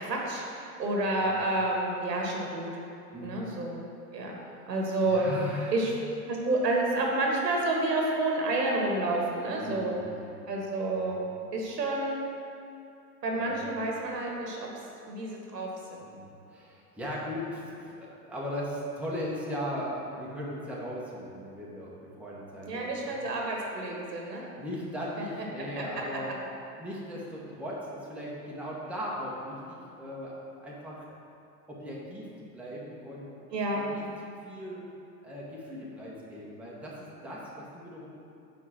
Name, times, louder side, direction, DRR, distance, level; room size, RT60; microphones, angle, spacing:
voice 1, 0.0-2.7 3.2-3.8 4.1-4.4 4.7-5.3 5.7-5.9 6.2-9.9 10.5-11.2 11.5-12.2 13.2-14.7 15.1-16.0 22.6-24.4 25.8-25.9 33.5-33.8, right 2 dB, 90° right, -1 dB, 1.3 m, -29 dB
voice 2, 5.0-5.7 9.6-10.3 11.0-11.2 13.3-13.6 16.0-23.1 24.6-26.3 26.8-31.0 31.7-32.3 32.5-33.3 33.7-34.8 35.2-38.1, equal, 5° right, -6 dB, 1.1 m, -38 dB
5.0 x 4.5 x 5.7 m, 2.6 s
hypercardioid pair, 110°, 47 cm